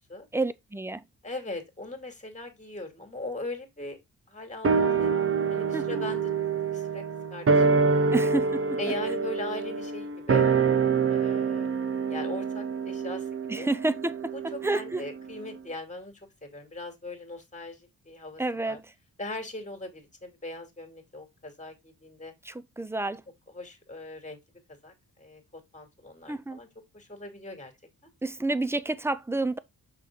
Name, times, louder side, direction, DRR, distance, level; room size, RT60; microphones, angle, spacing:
voice 1, 0.3-1.0 5.7-6.0 8.1-8.8 13.5-14.3 14.6-15.0 18.4-18.9 22.4-23.2 26.3-26.6 28.2-29.6, right 2 dB, 5° right, 0.6 m, -29 dB
voice 2, 1.2-4.0 4.3-5.1 5.5-7.0 7.3-8.2 8.8-10.5 11.1-13.3 13.6-13.7 14.3-18.8 19.2-22.3 23.5-24.4 24.8-26.7 26.9-27.7, left 2 dB, 20° left, 2.5 m, -40 dB
sound 1, 4.6-15.3 15.5-15.6, right 5 dB, 40° right, 1.0 m, -26 dB
6.0 x 5.7 x 3.6 m
cardioid pair, 100°, 35 cm